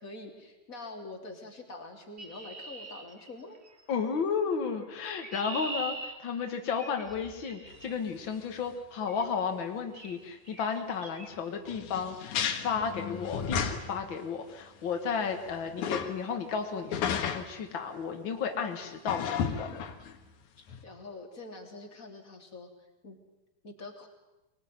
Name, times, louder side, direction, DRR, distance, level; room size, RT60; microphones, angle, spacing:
voice 1, 0.0-3.6 5.0-5.1 20.6-22.7 23.0-23.2 23.6-24.1, left 2 dB, 20° left, 1 dB, 3.4 m, -45 dB
Chirp tweet, 2.2-3.8 4.8-8.0 9.1-9.3 9.9-10.2 10.5-10.7 11.0-11.3, right 2 dB, 55° right, 0.7 m, -42 dB
voice 2, 3.9-19.7, left 6 dB, 90° left, 5 dB, 1.0 m, -33 dB
sound 1, 7.7-7.8 8.3-8.4 8.7-8.8 11.7-14.1 14.5-14.6 15.1-16.1 16.9-17.5 19.1-20.3 20.7-20.8, left 7 dB, 60° left, 2.4 m, -33 dB
24.0 x 20.5 x 9.6 m, 0.99 s
omnidirectional pair, 4.9 m